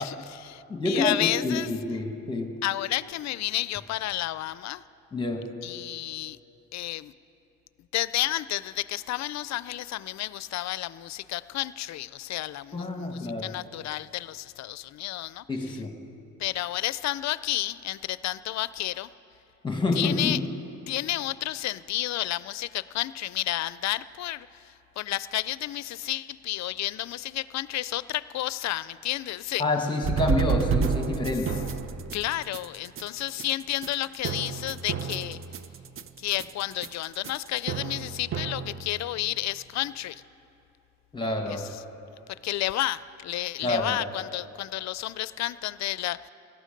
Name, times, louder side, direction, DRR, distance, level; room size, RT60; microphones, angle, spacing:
voice 1, 0.0-1.7 2.6-4.8 5.6-6.4 6.7-7.1 7.9-15.8 16.4-19.1 19.9-20.4 20.9-29.6 32.1-35.4 36.2-40.2 41.5-41.7 42.4-46.3, left 15 dB, 65° left, 17 dB, 0.4 m, -31 dB
voice 2, 0.7-2.6 5.1-5.6 12.7-13.6 15.5-16.0 19.6-20.4 29.6-31.7 41.1-41.7 43.6-44.0, left 2 dB, 15° left, 4 dB, 1.6 m, -28 dB
sound 1, 30.0-39.2, right 6 dB, 45° right, 0.6 m, -30 dB
18.0 x 12.5 x 5.2 m, 2.8 s
cardioid pair, 90°, 30 cm